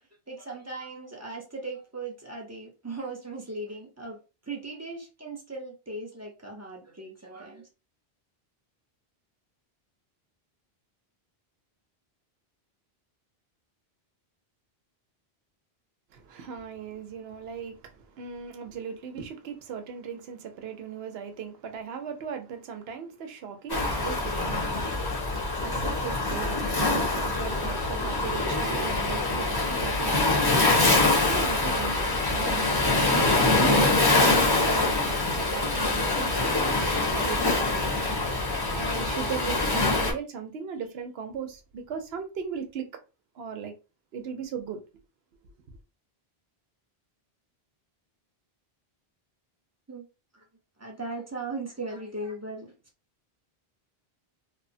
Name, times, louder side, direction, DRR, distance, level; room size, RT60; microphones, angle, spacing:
voice 1, 0.3-7.7 49.9-50.0 50.3-50.4 50.8-52.7, right 2 dB, 20° right, 0.6 m, -38 dB
voice 2, 16.1-30.3 31.3-31.9 32.3-32.8 33.4-35.0 35.3-38.1 38.7-42.9 43.3-43.7 44.1-44.8, right 6 dB, 70° right, 0.8 m, -37 dB
Waves surf, 23.7-40.1, left 2 dB, 25° left, 0.7 m, -24 dB
3.0 x 2.0 x 2.6 m
omnidirectional pair, 1.1 m